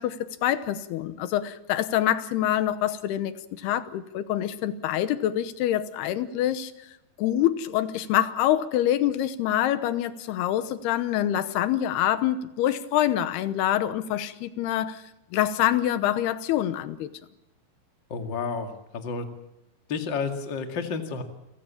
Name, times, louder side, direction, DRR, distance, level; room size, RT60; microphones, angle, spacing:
voice 1, 0.0-6.7 7.2-15.0 15.3-17.1, left 12 dB, 90° left, 3.1 m, -26 dB
voice 2, 18.1-19.3 19.9-21.2, left 5 dB, 35° left, 2.1 m, -31 dB
29.5 x 16.0 x 7.4 m
omnidirectional pair, 4.5 m